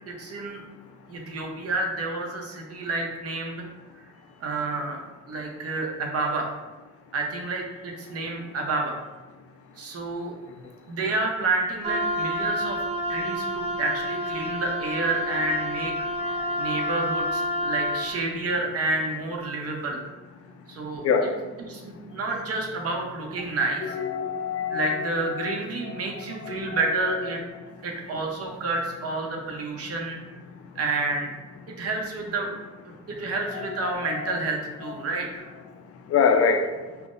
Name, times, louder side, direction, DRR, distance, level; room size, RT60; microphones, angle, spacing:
voice 1, 0.1-0.6 1.1-3.7 4.4-5.0 5.3-6.5 7.1-9.0 9.8-10.3 10.9-12.8 13.1-20.0 20.7-21.3 21.6-23.9 24.7-27.4 27.8-30.2 30.8-31.3 31.8-32.5 32.9-35.5, right 3 dB, 50° right, 1 dB, 0.8 m, -29 dB
Wind instrument woodwind instrument, 11.8-18.1, equal, 20° right, 0.4 m, -29 dB
voice 2, 23.9-24.8 25.4-25.5 26.4-26.8 34.0-34.3 36.1-36.6, left 6 dB, 50° left, 4 dB, 0.5 m, -23 dB
5.6 x 2.0 x 2.5 m, 1.2 s
cardioid pair, 90°, 30 cm